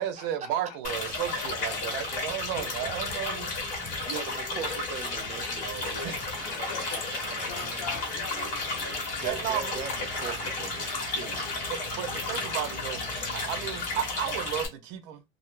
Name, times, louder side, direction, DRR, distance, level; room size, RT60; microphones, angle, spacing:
voice 1, 0.0-3.5 6.0-6.2 9.2-9.8 11.7-13.0 13.3-15.2, right 10 dB, 80° right, 0.5 m, -33 dB
sound 1, 0.8-14.7, left 3 dB, 40° left, 1.0 m, -33 dB
voice 2, 1.3-3.9 6.1-7.2 7.5-8.8, left 8 dB, 80° left, 0.6 m, -45 dB
voice 3, 4.1-7.6 9.2-11.6, right 6 dB, 35° right, 0.4 m, -40 dB
Clapping, 5.2-12.4, right 3 dB, 20° right, 1.0 m, -45 dB
2.3 x 2.1 x 2.9 m
cardioid pair, 165°, 21 cm